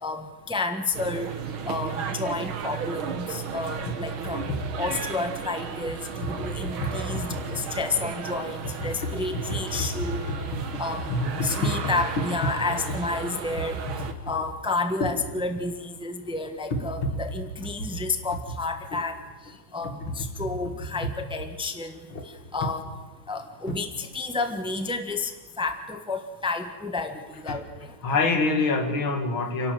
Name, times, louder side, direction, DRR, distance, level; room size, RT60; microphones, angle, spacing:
voice 1, 0.0-1.3 1.6-4.4 4.8-10.2 10.8-11.1 11.4-13.8 14.3-19.2 19.7-22.0 22.5-22.8 23.3-25.3 25.6-27.9, left 3 dB, 5° right, 7 dB, 1.1 m, -30 dB
sound 1, 0.9-14.1, right 7 dB, 85° right, 2.3 m, -34 dB
voice 2, 11.1-11.5 20.0-20.1 23.7-23.8 27.5-27.6 28.0-29.7, left 3 dB, 85° left, 5 dB, 3.0 m, -25 dB
29.5 x 12.0 x 7.8 m, 1.3 s
omnidirectional pair, 2.2 m